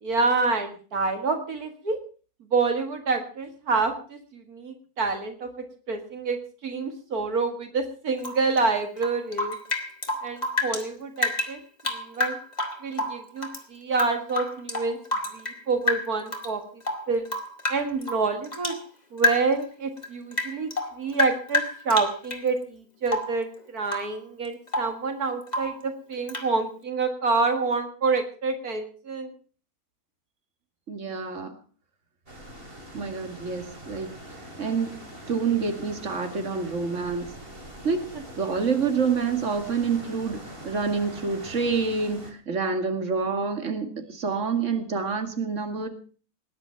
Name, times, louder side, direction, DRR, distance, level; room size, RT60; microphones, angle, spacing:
voice 1, 0.0-2.0 2.5-5.5 5.9-9.6 10.2-11.6 11.9-12.4 12.8-15.0 15.3-16.6 17.1-17.3 17.7-18.8 19.1-20.7 21.0-29.3, right 4 dB, 80° right, 7 dB, 2.3 m, -27 dB
Rain / Drip, 8.2-10.9 11.2-13.6 13.9-15.6 15.9-16.5 16.8-18.8 19.2-19.6 20.0-22.5 23.1-23.4 23.8-24.2 24.4-25.0 25.5-25.8 26.3-26.5, left 2 dB, 25° left, 2.6 m, -29 dB
voice 2, 30.9-31.5 32.9-34.1 34.6-35.0 35.3-37.3 37.8-38.0 38.4-45.9, right 5 dB, 55° right, 7 dB, 2.5 m, -27 dB
sound 1, 32.3-42.3, equal, 40° right, 3.3 m, -43 dB
19.5 x 10.5 x 5.8 m, 0.40 s
omnidirectional pair, 1.6 m